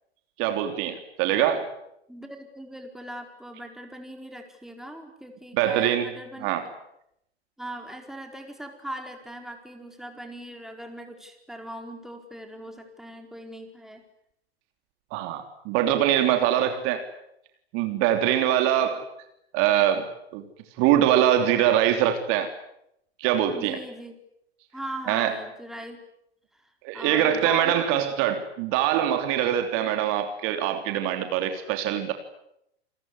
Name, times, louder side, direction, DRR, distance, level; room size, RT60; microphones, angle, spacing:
voice 1, 0.4-1.7 5.5-6.1 6.4-6.7 15.1-17.1 17.7-19.1 19.5-20.5 20.8-22.5 23.2-23.8 25.1-25.4 26.8-32.1, right 11 dB, 40° right, 7 dB, 3.3 m, -23 dB
voice 2, 2.1-6.5 7.6-14.0 23.5-24.2 24.7-26.0 26.5-28.1, right 1 dB, ahead, 4 dB, 4.5 m, -39 dB
28.5 x 20.5 x 9.8 m, 0.79 s
hypercardioid pair, 105°, 32 cm